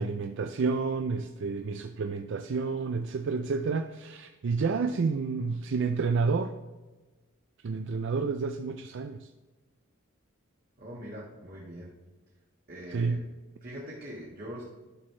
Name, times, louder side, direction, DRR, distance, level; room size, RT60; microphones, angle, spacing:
voice 1, 0.0-6.5 7.6-9.3 12.9-13.2, right 4 dB, 60° right, 7 dB, 0.4 m, -30 dB
voice 2, 10.8-11.9 12.7-13.2 13.6-14.6, equal, 45° right, -6 dB, 1.6 m, -42 dB
11.5 x 6.3 x 3.2 m, 1.2 s
head